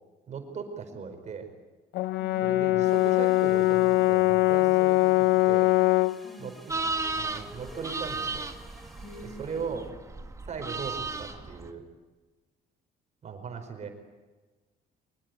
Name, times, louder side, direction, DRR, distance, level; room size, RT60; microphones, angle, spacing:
voice 1, 0.3-1.5 2.4-5.7 6.4-6.7 7.1-8.5 9.4-9.9 10.4-11.8 13.2-13.9, right 6 dB, 45° right, 6 dB, 4.8 m, -38 dB
Brass instrument, 1.9-6.2, left 20 dB, 80° left, 0.7 m, -22 dB
sound 1, 2.8-9.9, right 1 dB, ahead, 4.1 m, -50 dB
voice 2, 6.2-6.5 9.0-9.8, left 1 dB, 45° left, 7 dB, 5.5 m, -46 dB
sound 2, 6.7-11.7, right 3 dB, 20° right, 1.8 m, -35 dB
23.5 x 20.5 x 9.5 m, 1.3 s
cardioid pair, 110°, 17 cm